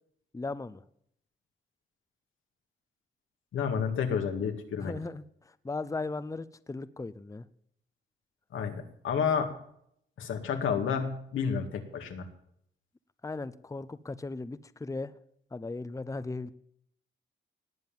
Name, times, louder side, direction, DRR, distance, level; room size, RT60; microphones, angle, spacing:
voice 1, 0.3-0.8 4.8-7.5 13.2-15.1 15.5-16.5, left 3 dB, 15° left, 14 dB, 0.7 m, -37 dB
voice 2, 3.5-4.9 8.5-9.5 10.2-12.3, left 6 dB, 90° left, 5 dB, 2.1 m, -30 dB
19.0 x 7.5 x 7.4 m, 0.70 s
cardioid pair, 80°, 20 cm